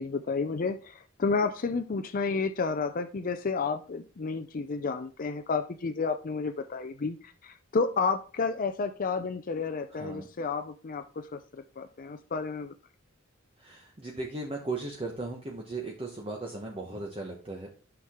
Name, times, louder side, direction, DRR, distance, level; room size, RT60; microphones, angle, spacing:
voice 1, 0.0-12.7, left 4 dB, 40° left, 9 dB, 0.5 m, -31 dB
voice 2, 9.9-10.3 13.6-17.7, right 2 dB, 25° right, 0 dB, 1.1 m, -37 dB
9.3 x 6.0 x 3.6 m, 0.36 s
head